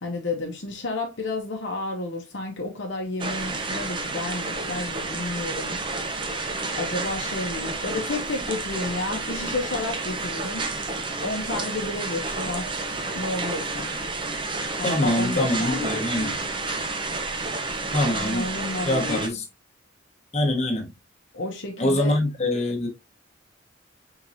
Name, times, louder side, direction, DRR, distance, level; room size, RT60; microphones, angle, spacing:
voice 1, 0.0-6.0 6.7-10.7 11.2-12.7 13.1-13.9 14.8-16.4 18.1-19.2 21.3-22.2, left 2 dB, 65° left, 0.8 m, -31 dB
sound 1, 3.2-19.3, right 3 dB, 25° right, 0.7 m, -30 dB
voice 2, 14.8-16.3 17.9-18.5 18.8-19.4 20.3-20.9 21.8-22.9, left 1 dB, 35° left, 1.1 m, -24 dB
4.5 x 3.8 x 2.7 m
head